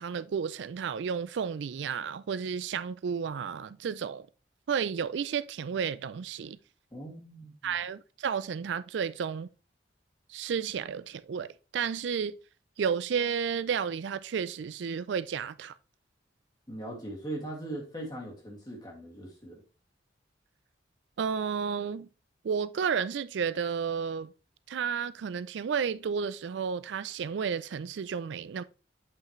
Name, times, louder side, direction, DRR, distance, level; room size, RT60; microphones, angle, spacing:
voice 1, 0.0-4.3 4.7-6.6 7.6-9.5 10.3-12.4 12.8-15.7 21.2-22.1 22.4-24.3 24.7-28.6, right 6 dB, 75° right, 0.4 m, -32 dB
voice 2, 6.9-7.8 16.7-19.6, right 1 dB, 20° left, 2.1 m, -40 dB
8.1 x 5.7 x 3.1 m
head